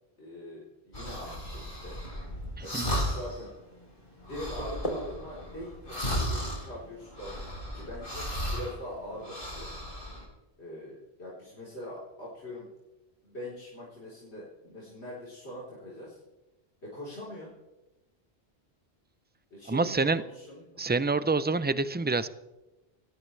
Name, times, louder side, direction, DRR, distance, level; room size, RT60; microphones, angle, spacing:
voice 1, 0.2-2.0 2.6-3.5 4.2-7.4 7.7-8.2 8.5-9.7 10.6-12.7 13.2-16.2 16.8-17.5 19.5-20.8, left 1 dB, 90° left, -6 dB, 4.3 m, -42 dB
sound 1, 0.9-3.5 3.8-3.9 4.2-8.8 9.1-10.2, equal, 55° left, 5.5 m, -35 dB
voice 2, 2.6-2.9 19.7-20.2 20.8-22.3, right 3 dB, 15° right, 13 dB, 0.3 m, -27 dB
sound 2, 4.3-10.1, equal, 35° left, 3.2 m, -43 dB
22.0 x 18.0 x 3.3 m, 1.0 s
omnidirectional pair, 1.1 m